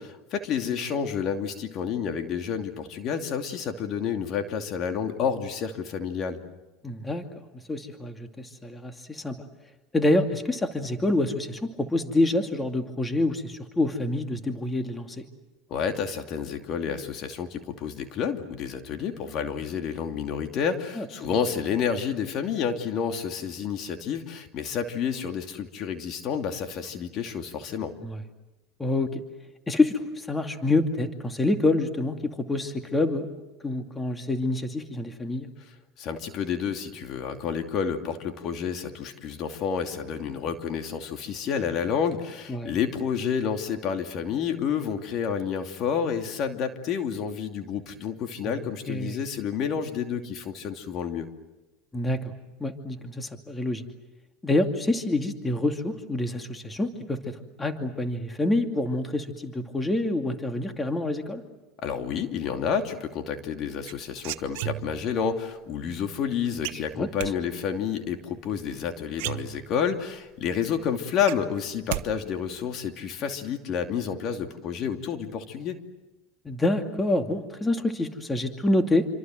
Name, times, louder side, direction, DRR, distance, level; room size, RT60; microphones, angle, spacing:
voice 1, 0.0-6.4 15.7-27.9 36.0-51.3 61.8-75.8, left 7 dB, 50° left, 6 dB, 2.7 m, -30 dB
voice 2, 6.8-9.4 9.9-15.2 21.0-21.3 28.0-28.2 28.8-29.2 29.7-33.3 33.6-35.5 42.5-42.8 48.4-49.2 51.9-52.3 52.6-53.8 54.4-61.4 66.7-67.1 76.4-79.1, left 2 dB, 15° left, 6 dB, 2.5 m, -27 dB
sound 1, 63.9-65.2 66.6-67.3 68.7-68.8 69.1-70.0 70.4-70.5 70.8-72.1 72.3-72.8, right 18 dB, 75° right, 1.1 m, -34 dB
27.5 x 26.0 x 7.8 m, 1.0 s
supercardioid pair, 110°, 0 cm